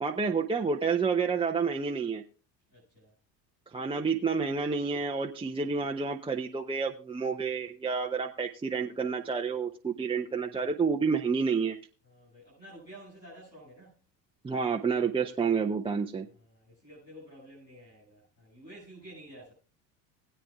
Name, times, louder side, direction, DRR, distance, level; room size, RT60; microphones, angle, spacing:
voice 1, 0.0-2.2 3.7-11.8 14.4-16.3, right 5 dB, 10° right, 0.7 m, -29 dB
voice 2, 2.7-3.1 10.4-10.7 12.0-14.0 16.3-19.5, right 1 dB, 90° left, 7.2 m, -51 dB
20.5 x 9.1 x 2.3 m
figure-of-eight pair, 70°, 49 cm